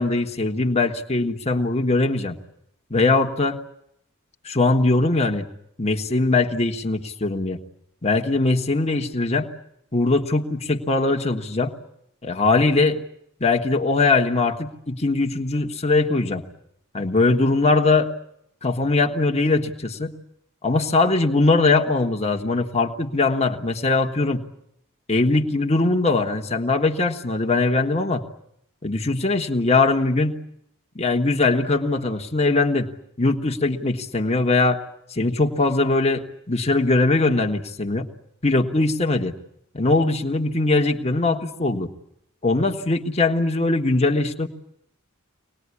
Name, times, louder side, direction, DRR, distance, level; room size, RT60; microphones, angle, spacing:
voice 1, 0.0-2.4 2.9-3.6 4.4-5.5 5.8-7.6 8.0-9.5 9.9-11.7 12.2-13.0 13.4-16.4 16.9-18.1 18.6-20.1 20.6-24.4 25.1-28.2 28.8-30.4 30.9-32.9 33.2-34.8 35.1-38.1 38.4-39.3 39.7-41.9 42.4-44.5, left 3 dB, 30° left, 3 dB, 1.4 m, -21 dB
24.5 x 19.5 x 9.7 m, 0.75 s
head